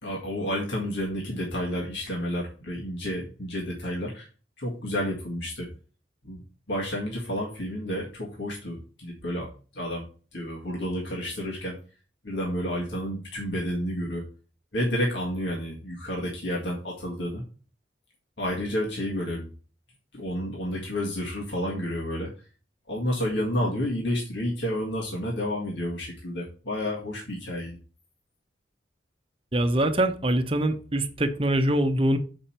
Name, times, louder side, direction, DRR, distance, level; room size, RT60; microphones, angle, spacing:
voice 1, 0.0-4.3 4.6-5.7 6.2-6.4 6.7-11.8 12.2-14.3 14.7-17.4 18.4-19.5 20.1-22.3 22.9-27.8, equal, 70° left, 1.9 m, -30 dB
voice 2, 29.5-32.2, right 1 dB, 30° right, 0.8 m, -24 dB
7.1 x 5.4 x 4.3 m
head